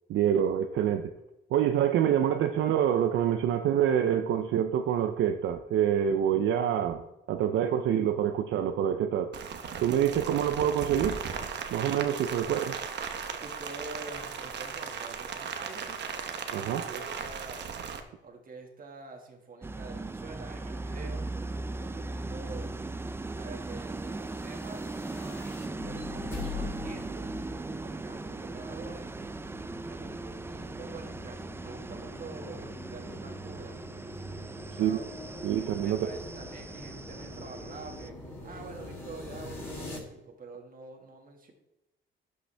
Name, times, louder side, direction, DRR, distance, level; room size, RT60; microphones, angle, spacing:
voice 1, 0.1-1.1 1.5-7.0 7.3-9.3 9.8-11.2 11.7-12.8 16.5-16.9 34.8-35.0 35.4-36.0, right 9 dB, 75° right, 7 dB, 0.5 m, -26 dB
Rain, 9.3-18.0, right 6 dB, 60° right, 1.0 m, -37 dB
voice 2, 13.4-16.1 16.8-17.7 18.2-22.7 23.3-25.0 25.8-27.3 27.7-29.2 29.9-35.1 35.8-41.5, right 3 dB, 45° right, 3 dB, 1.8 m, -47 dB
sound 1, 19.6-38.1, right 2 dB, 10° right, 0.4 m, -39 dB
sound 2, 24.2-40.0, left 3 dB, 10° left, 3.3 m, -44 dB
11.5 x 5.3 x 3.4 m, 0.94 s
cardioid pair, 90°, 20 cm